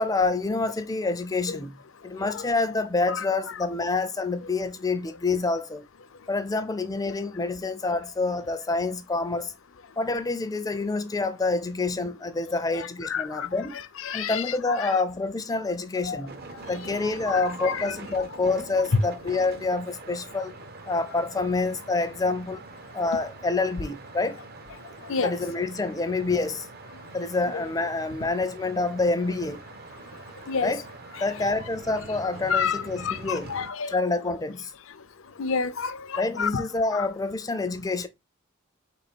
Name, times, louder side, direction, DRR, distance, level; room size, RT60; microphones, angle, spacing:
voice 1, 0.0-1.7 2.0-5.8 6.3-9.5 10.0-13.7 14.1-16.3 16.7-20.5 20.9-22.6 22.9-24.4 25.2-26.6 27.1-29.6 30.6-30.8 31.2-33.5 33.9-34.7 36.2-38.1, left 3 dB, 20° left, 0.4 m, -27 dB
voice 2, 12.7-14.9 16.0-16.2 16.7-16.8 17.3-18.2 18.9-19.0 25.1-25.4 27.2-27.7 30.5-30.7 31.1-31.3 32.5-34.0 35.4-36.7 36.9-37.1, left 5 dB, 70° left, 0.5 m, -30 dB
sound 1, 16.3-33.7, right 3 dB, 50° right, 0.6 m, -44 dB
4.1 x 3.0 x 4.3 m
head